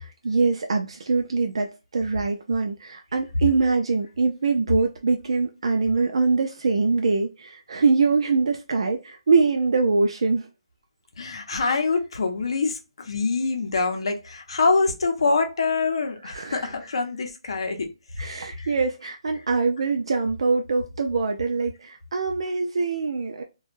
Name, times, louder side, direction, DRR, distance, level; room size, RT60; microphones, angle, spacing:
voice 1, 0.0-10.5 16.3-16.6 18.2-23.4, right 4 dB, 65° right, 0.4 m, -23 dB
voice 2, 11.2-18.8, left 4 dB, 65° left, 0.6 m, -25 dB
2.2 x 2.0 x 3.0 m
hypercardioid pair, 175°, 3 cm